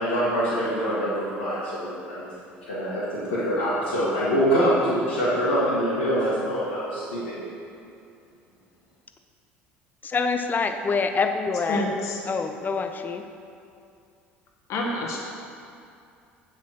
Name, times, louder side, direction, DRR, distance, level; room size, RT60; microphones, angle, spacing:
voice 1, 0.0-2.2 2.6-7.4, equal, 85° left, -10 dB, 1.8 m, -25 dB
voice 2, 10.0-11.9 12.3-13.2, left 4 dB, 30° left, 7 dB, 0.8 m, -26 dB
voice 3, 11.7-12.2 14.7-15.3, left 1 dB, 55° left, -1 dB, 1.7 m, -28 dB
7.4 x 5.9 x 6.4 m, 2.5 s
hypercardioid pair, 65°, 6 cm